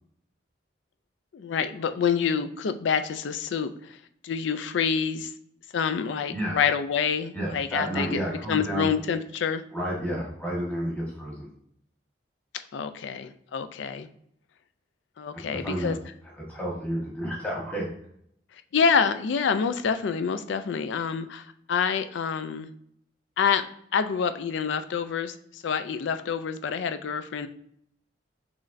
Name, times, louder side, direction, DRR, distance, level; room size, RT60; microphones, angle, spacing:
voice 1, 1.3-4.0 4.2-5.3 5.7-8.2 8.5-9.6 12.7-14.1 15.2-16.0 18.7-22.7 23.4-23.7 23.9-27.5, left 6 dB, 75° left, 10 dB, 0.4 m, -27 dB
voice 2, 7.3-8.9 9.7-11.5 15.3-15.9 16.5-17.8, right 1 dB, 10° left, -5 dB, 1.3 m, -31 dB
6.1 x 3.2 x 2.5 m, 0.69 s
head